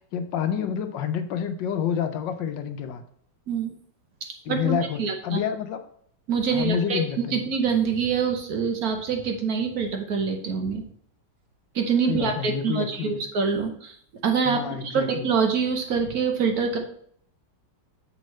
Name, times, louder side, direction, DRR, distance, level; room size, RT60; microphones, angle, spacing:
voice 1, 0.0-3.0 4.5-5.8 6.5-7.4 12.1-13.2 14.4-15.3, left 8 dB, 80° left, 9 dB, 1.4 m, -28 dB
voice 2, 4.2-5.4 6.3-10.8 11.7-14.0 14.2-16.8, right 6 dB, 60° right, 4 dB, 1.3 m, -25 dB
7.7 x 5.4 x 3.2 m, 0.62 s
omnidirectional pair, 2.0 m